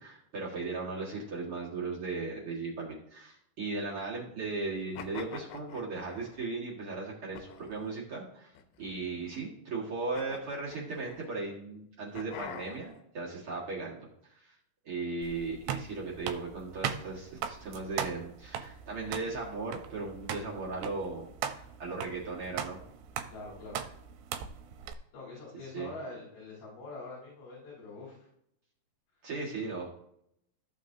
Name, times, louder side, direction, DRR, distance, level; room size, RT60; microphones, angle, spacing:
voice 1, 0.0-8.5 8.8-14.0 14.3-14.5 14.8-22.8 25.7-25.9 29.2-29.9, right 3 dB, 50° right, -5 dB, 1.7 m, -37 dB
sound 1, 5.0-6.5 7.3-7.9 8.6-9.3 10.1-11.3 12.2-13.0, left 8 dB, 90° left, 2.9 m, -46 dB
sound 2, 15.2-24.9, right 9 dB, 85° right, 2.8 m, -39 dB
voice 2, 23.3-23.8 25.1-28.3, left 3 dB, 65° left, -7 dB, 5.0 m, -44 dB
14.5 x 6.2 x 2.7 m, 0.73 s
omnidirectional pair, 4.7 m